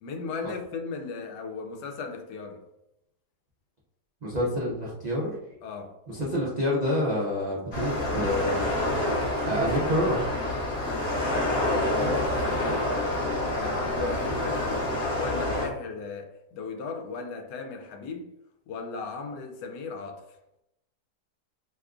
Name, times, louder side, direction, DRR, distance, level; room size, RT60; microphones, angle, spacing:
voice 1, 0.0-2.6 5.6-6.0 9.5-9.9 10.7-13.0 13.5-14.9 15.1-18.3 18.7-20.4, left 4 dB, 80° left, 1.2 m, -37 dB
voice 2, 4.2-5.4 6.1-8.7 9.4-10.3, equal, 85° right, 0.3 m, -27 dB
sound 1, 7.7-15.7, left 1 dB, 50° left, 0.9 m, -27 dB
2.9 x 2.3 x 3.6 m
omnidirectional pair, 1.8 m